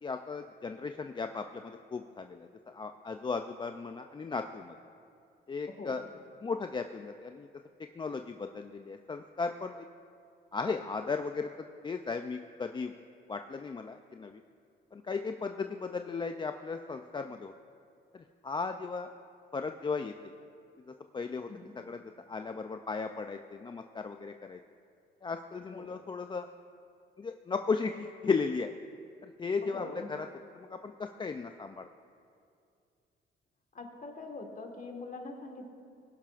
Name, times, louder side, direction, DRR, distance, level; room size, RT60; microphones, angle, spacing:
voice 1, 0.0-2.4 2.7-4.7 5.5-6.0 6.4-7.5 8.0-9.9 10.5-11.5 11.8-12.9 13.3-14.4 14.9-17.5 18.4-19.1 19.5-20.3 21.1-21.5 21.9-22.0 22.3-24.6 25.2-26.5 27.2-28.7 29.2-30.3 30.6-30.9 31.2-31.9, left 4 dB, 25° left, 7 dB, 0.4 m, -35 dB
voice 2, 5.7-6.1 21.5-21.7 25.7-25.9 29.6-30.1 33.7-35.7, left 3 dB, 40° left, 3 dB, 1.6 m, -43 dB
20.5 x 11.5 x 2.5 m, 2.4 s
cardioid pair, 90°, 20 cm